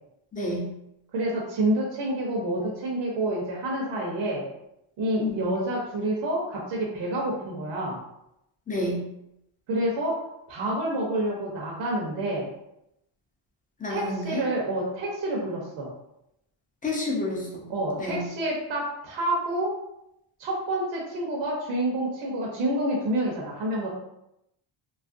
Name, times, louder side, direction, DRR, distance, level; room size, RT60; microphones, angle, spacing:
voice 1, 0.3-0.7 5.2-5.5 8.7-9.0 13.8-14.4 16.8-17.6 18.0-18.2, left 2 dB, 15° left, -3 dB, 0.5 m, -29 dB
voice 2, 1.1-4.4 5.0-8.0 9.7-10.2 10.5-12.5 13.9-15.9 17.7-19.7 20.4-23.9, right 1 dB, 65° right, -3 dB, 0.8 m, -28 dB
3.2 x 2.4 x 2.5 m, 0.82 s
cardioid pair, 175°, 48 cm